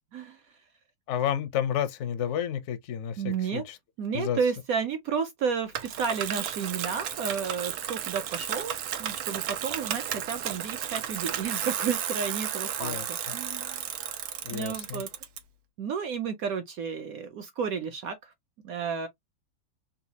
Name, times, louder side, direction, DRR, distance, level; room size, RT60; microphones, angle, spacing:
voice 1, 1.1-3.8 4.1-4.4 12.8-13.0 14.4-15.0, left 9 dB, 70° left, 0.7 m, -30 dB
voice 2, 3.2-3.6 4.0-8.7 9.0-13.8 14.5-15.1 15.8-18.3 18.6-19.1, right 6 dB, 75° right, 0.8 m, -32 dB
Bicycle, 5.7-15.4, right 10 dB, 90° right, 1.5 m, -33 dB
4.1 x 2.3 x 2.7 m
omnidirectional pair, 2.1 m